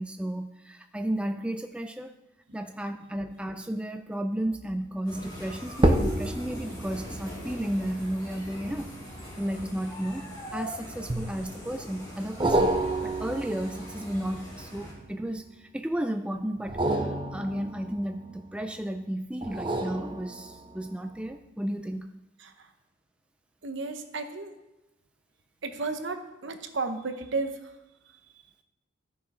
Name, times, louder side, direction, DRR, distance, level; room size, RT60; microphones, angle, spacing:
voice 1, 0.0-2.1 2.5-8.9 9.4-12.8 13.0-22.1, right 1 dB, 5° right, 7 dB, 0.3 m, -33 dB
sound 1, 4.5-4.9 5.7-10.4 11.1-11.7 12.4-15.4 16.6-18.7 19.4-20.8 21.3-21.4, right 1 dB, 25° right, 0.7 m, -30 dB
sound 2, 5.0-14.9, equal, 20° left, 3.6 m, -42 dB
voice 2, 22.4-22.7 23.6-24.6 25.6-27.8 28.1-28.2, right 3 dB, 65° right, 7 dB, 0.9 m, -34 dB
13.0 x 7.0 x 4.8 m, 0.99 s
head